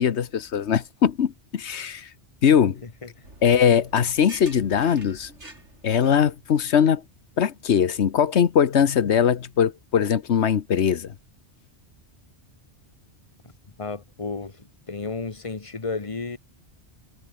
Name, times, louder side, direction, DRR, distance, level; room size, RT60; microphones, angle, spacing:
voice 1, 0.0-2.1 2.4-2.8 3.4-5.3 5.8-7.0 7.4-11.1, left 8 dB, 75° left, 1.3 m, -21 dB
voice 2, 2.8-3.2 13.8-16.4, left 4 dB, 30° left, 1.3 m, -33 dB
sound 1, 3.2-6.6, right 1 dB, 80° right, 7.3 m, -47 dB
omnidirectional pair, 1.2 m